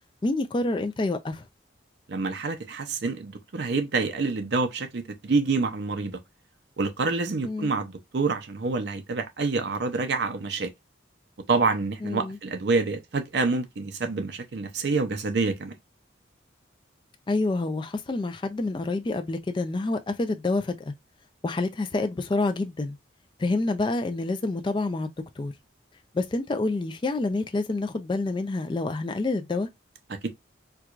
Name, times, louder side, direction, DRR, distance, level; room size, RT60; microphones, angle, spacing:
voice 1, 0.2-1.4 7.4-7.7 12.0-12.4 17.3-20.9 21.4-23.0 23.4-25.1 25.4-25.5 26.1-29.7, left 2 dB, 25° left, 0.3 m, -27 dB
voice 2, 2.1-6.2 6.8-10.7 11.5-15.7 30.1-30.4, right 3 dB, 60° right, 0.5 m, -27 dB
4.5 x 2.3 x 2.4 m
head